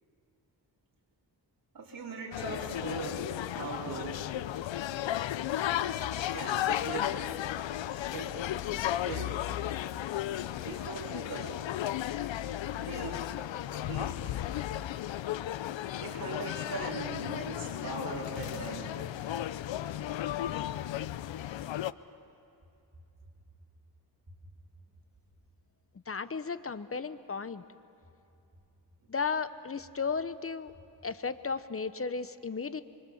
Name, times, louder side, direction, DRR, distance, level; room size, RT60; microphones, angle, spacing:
voice 1, 1.7-3.3 3.5-4.3 6.3-7.3 7.8-8.4 8.9-9.4 10.6-11.6 12.7-13.3 13.7-14.4 16.0-19.0, right 4 dB, 50° right, -4 dB, 3.7 m, -40 dB
sound 1, 2.3-21.9, left 12 dB, 90° left, 0.6 m, -34 dB
voice 2, 26.1-27.6 29.1-30.7 31.0-32.8, left 5 dB, 30° left, 13 dB, 0.9 m, -34 dB
25.5 x 25.0 x 7.2 m, 2.6 s
cardioid pair, 85°, 43 cm